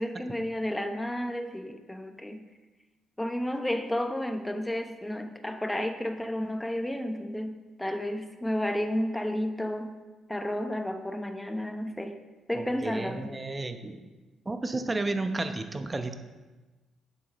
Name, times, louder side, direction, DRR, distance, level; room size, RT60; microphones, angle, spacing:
voice 1, 0.0-2.4 3.2-9.9 10.3-12.2 12.5-13.3, left 1 dB, 10° left, 6 dB, 1.0 m, -32 dB
voice 2, 12.5-14.1 14.4-16.2, right 2 dB, 25° right, 7 dB, 0.9 m, -32 dB
11.0 x 8.4 x 3.1 m, 1.2 s
cardioid pair, 90°, 0 cm